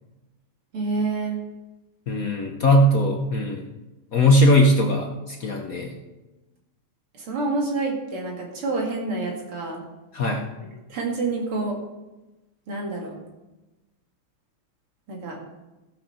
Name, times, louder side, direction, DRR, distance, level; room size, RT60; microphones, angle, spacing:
voice 1, 0.7-1.4 7.1-9.8 10.9-11.8 12.7-13.2 15.1-15.4, right 3 dB, 80° right, -1 dB, 3.1 m, -28 dB
voice 2, 2.1-3.6 4.1-5.9 10.1-10.5, left 1 dB, 55° left, 2 dB, 1.0 m, -19 dB
15.0 x 5.7 x 5.7 m, 1.1 s
omnidirectional pair, 2.4 m